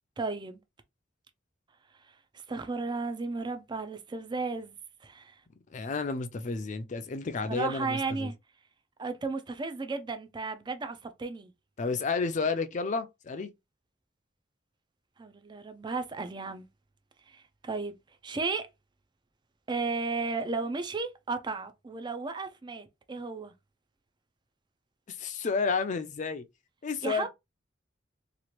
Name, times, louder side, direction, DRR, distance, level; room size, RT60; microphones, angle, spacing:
voice 1, 0.2-0.6 2.3-5.4 7.5-8.3 9.0-11.5 15.2-16.7 17.3-17.9 18.2-18.7 19.7-23.5 27.0-27.3, right 4 dB, 25° right, 0.4 m, -34 dB
voice 2, 5.7-8.3 11.8-13.5 25.1-26.4 26.8-27.3, left 4 dB, 45° left, 0.4 m, -31 dB
3.0 x 2.4 x 3.0 m
head